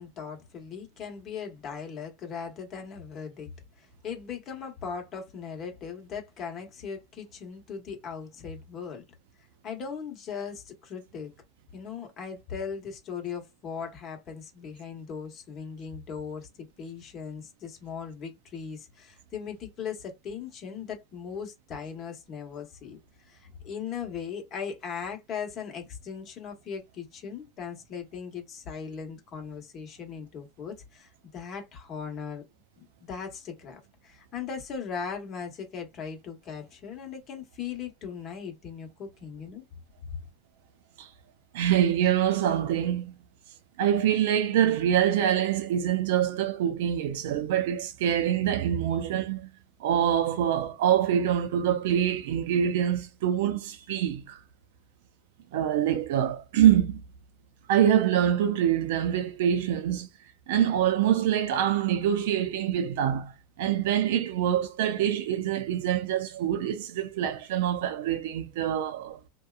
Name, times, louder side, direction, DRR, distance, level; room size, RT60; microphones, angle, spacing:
voice 1, 0.0-3.5 3.8-9.0 9.6-11.3 11.7-32.4 32.8-39.6, left 6 dB, 35° left, 1.1 m, -38 dB
voice 2, 41.5-43.2 43.8-49.5 49.8-54.4 55.5-57.0 57.7-60.1 60.5-69.2, right 10 dB, 75° right, 0.5 m, -25 dB
2.7 x 2.2 x 2.4 m
supercardioid pair, 125°, 0 cm